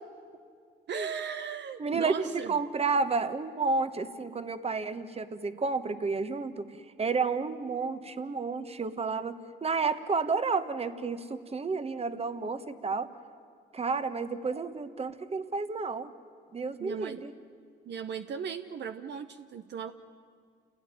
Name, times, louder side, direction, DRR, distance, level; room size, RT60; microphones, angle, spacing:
voice 1, 0.9-2.5 16.8-17.2 17.9-19.9, right 7 dB, 60° right, 9 dB, 0.9 m, -37 dB
voice 2, 1.8-13.1 13.7-16.1 16.5-17.3, right 4 dB, 30° right, 11 dB, 1.4 m, -31 dB
28.5 x 16.5 x 9.9 m, 2.2 s
cardioid pair, 90°, 20 cm